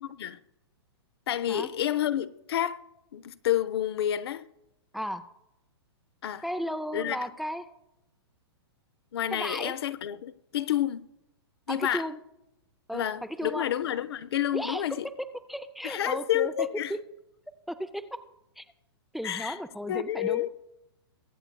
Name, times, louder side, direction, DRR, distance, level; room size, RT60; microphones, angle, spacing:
voice 1, 0.0-0.4 1.3-2.8 3.1-4.4 6.2-6.4 6.9-7.2 9.1-11.0 11.7-12.0 12.9-15.0 15.8-16.9 19.2-19.6 19.9-20.5, left 11 dB, 65° left, 0.6 m, -29 dB
voice 2, 6.4-7.7 9.3-9.7 11.7-12.2 12.9-13.7 14.5-15.1 15.5-17.0 17.7-18.1 18.6-18.7 19.1-20.5, equal, ahead, 0.5 m, -35 dB
22.5 x 8.1 x 2.3 m
hypercardioid pair, 120°, 14 cm